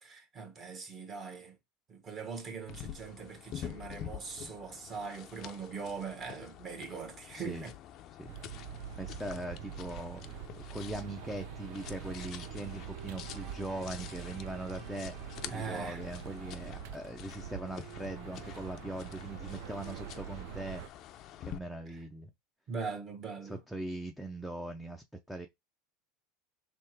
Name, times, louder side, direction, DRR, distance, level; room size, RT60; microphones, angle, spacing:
voice 1, 0.0-1.6 1.9-7.8 15.5-16.0 21.9-22.0 22.7-23.6, right 5 dB, 30° right, 1.4 m, -41 dB
sound 1, 2.7-21.6, left 10 dB, 45° left, 0.5 m, -47 dB
voice 2, 7.3-7.7 8.2-8.3 8.9-10.4 10.7-20.8 21.4-22.3 23.4-25.5, right 1 dB, ahead, 0.5 m, -41 dB
sound 2, 8.3-20.9, right 11 dB, 65° right, 0.4 m, -45 dB
sound 3, 10.7-20.5, right 7 dB, 50° right, 0.9 m, -55 dB
3.5 x 2.9 x 4.5 m
supercardioid pair, 135°, 0 cm